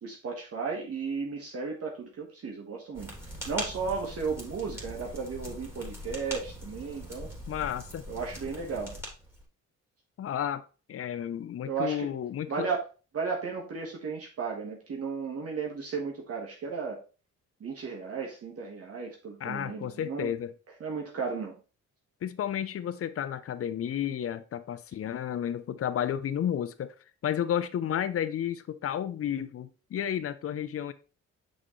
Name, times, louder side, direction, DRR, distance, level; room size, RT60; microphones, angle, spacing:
voice 1, 0.0-7.3 8.1-8.9 11.7-12.1 12.5-12.8 13.1-17.0 17.6-20.3 20.8-21.6, right 5 dB, 50° right, 1.7 m, -34 dB
sound 1, 2.9-9.4, equal, 10° right, 2.9 m, -41 dB
voice 2, 7.5-8.1 10.2-10.6 10.9-12.7 19.4-20.5 22.2-26.9 27.2-30.9, left 9 dB, 50° left, 0.7 m, -32 dB
6.3 x 5.0 x 3.2 m
cardioid pair, 90°, 30 cm